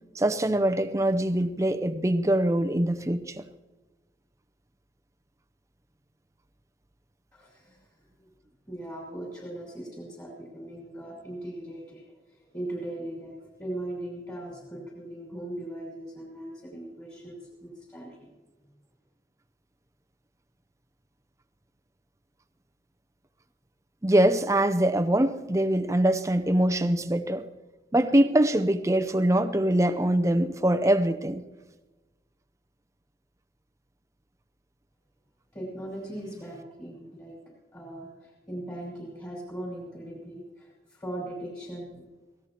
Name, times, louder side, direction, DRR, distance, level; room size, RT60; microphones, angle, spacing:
voice 1, 0.1-3.4 24.0-27.4 27.9-31.4, right 1 dB, 15° right, 0.6 m, -23 dB
voice 2, 7.3-7.9 8.2-8.3 8.7-18.2 35.5-37.4 37.7-42.0, right 1 dB, 20° left, 5.3 m, -39 dB
25.0 x 18.0 x 3.0 m
head